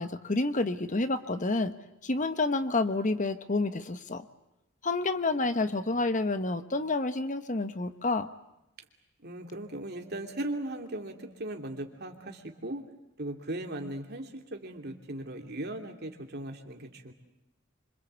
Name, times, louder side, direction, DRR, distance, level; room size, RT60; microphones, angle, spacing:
voice 1, 0.0-1.7 2.0-4.2 4.8-8.3, left 2 dB, 40° left, 10 dB, 1.2 m, -29 dB
voice 2, 9.2-12.9 13.2-17.1, right 1 dB, 50° right, 4 dB, 3.0 m, -38 dB
26.5 x 25.5 x 8.2 m, 0.89 s
head